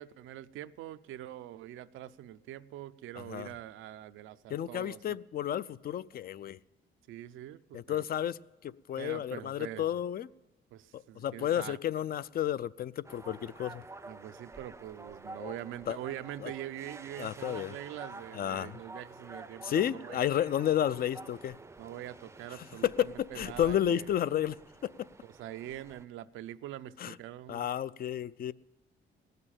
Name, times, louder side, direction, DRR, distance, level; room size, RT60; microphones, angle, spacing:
voice 1, 0.0-5.2 7.1-8.1 9.0-9.9 10.7-11.8 14.0-20.2 21.8-24.1 25.2-27.7, right 13 dB, 90° right, 0.5 m, -44 dB
voice 2, 3.2-3.5 4.5-6.6 7.7-10.3 10.9-13.8 15.4-15.5 15.9-16.0 16.4-16.5 17.2-17.8 18.3-18.8 19.6-21.5 22.6-24.6 24.8-25.1 27.0-27.2 27.5-28.5, left 10 dB, 50° left, 0.4 m, -32 dB
sound 1, 13.0-26.0, right 2 dB, 15° right, 0.5 m, -49 dB
17.5 x 6.7 x 8.8 m
cardioid pair, 90°, 20 cm